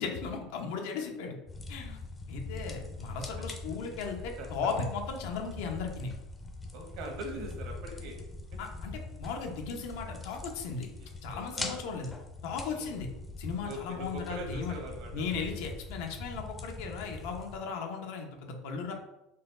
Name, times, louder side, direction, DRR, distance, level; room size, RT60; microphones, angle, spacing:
voice 1, 0.0-1.4 1.7-2.0 2.3-6.1 8.6-10.9 11.2-12.1 12.4-13.1 13.4-14.7 15.1-18.9, left 5 dB, 75° left, 3 dB, 0.7 m, -36 dB
sound 1, 1.5-17.6, left 2 dB, 15° left, 0.5 m, -42 dB
voice 2, 4.4-4.7 6.7-8.2 11.0-11.8 12.7-12.9 13.6-15.5, right 1 dB, 60° right, 2 dB, 1.1 m, -42 dB
4.1 x 2.3 x 3.7 m, 0.93 s
supercardioid pair, 140°, 0 cm